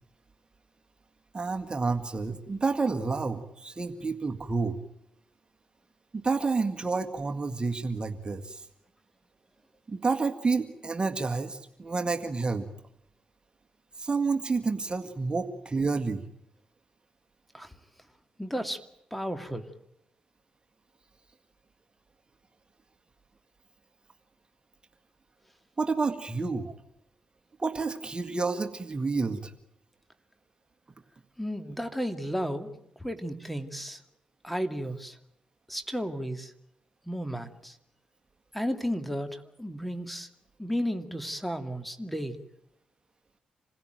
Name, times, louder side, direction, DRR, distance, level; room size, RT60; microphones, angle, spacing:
voice 1, 1.3-4.8 6.1-8.7 9.9-12.7 14.0-16.2 25.8-26.7 27.6-29.5, right 4 dB, 35° right, 6 dB, 1.9 m, -29 dB
voice 2, 18.4-18.8 19.1-19.7 31.4-34.0 34.4-35.2 35.7-36.5 37.1-37.8 38.5-40.3 40.6-42.4, equal, 5° left, 8 dB, 2.5 m, -33 dB
27.0 x 16.0 x 9.3 m, 0.78 s
supercardioid pair, 45°, 3 cm